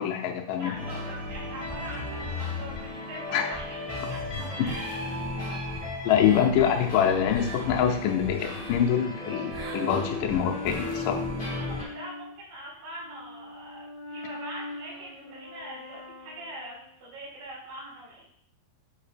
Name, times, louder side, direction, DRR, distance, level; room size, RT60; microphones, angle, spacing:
voice 1, 0.0-0.7 3.3-3.5 6.0-11.2, left 9 dB, 85° left, 1 dB, 1.8 m, -25 dB
voice 2, 0.6-5.3 11.6-18.3, right 1 dB, 70° right, -7 dB, 3.9 m, -42 dB
sound 1, 0.7-11.8, left 2 dB, 35° left, 0.4 m, -34 dB
sound 2, 6.3-6.8 7.1-7.7 8.5-8.9 9.5-10.0 10.7-11.0, right 5 dB, 85° right, 3.0 m, -45 dB
Brass instrument, 8.4-12.4 12.9-17.0, left 2 dB, 10° right, 0.8 m, -41 dB
7.2 x 2.9 x 5.0 m, 0.69 s
omnidirectional pair, 4.8 m